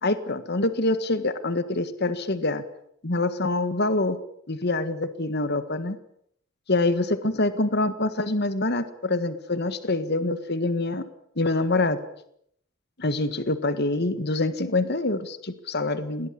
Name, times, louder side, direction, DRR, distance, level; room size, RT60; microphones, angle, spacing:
voice 1, 0.0-2.6 3.0-4.2 4.5-6.0 6.7-11.0 11.4-12.0 13.0-16.3, left 2 dB, 50° left, 12 dB, 1.7 m, -25 dB
21.0 x 17.5 x 9.9 m, 0.71 s
head